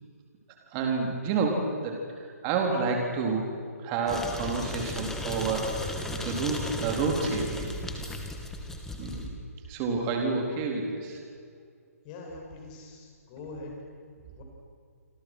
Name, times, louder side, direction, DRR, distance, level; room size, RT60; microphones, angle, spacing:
voice 1, 0.7-2.0 2.4-3.5 3.8-7.7 9.0-9.3 9.7-11.2, right 4 dB, 25° right, 1 dB, 4.1 m, -29 dB
sound 1, 4.1-9.3, left 2 dB, 5° left, 2.5 m, -35 dB
voice 2, 12.0-13.7 14.4-14.5, left 3 dB, 30° left, 0 dB, 7.8 m, -43 dB
27.5 x 27.5 x 6.4 m, 2.2 s
figure-of-eight pair, 135°, 8 cm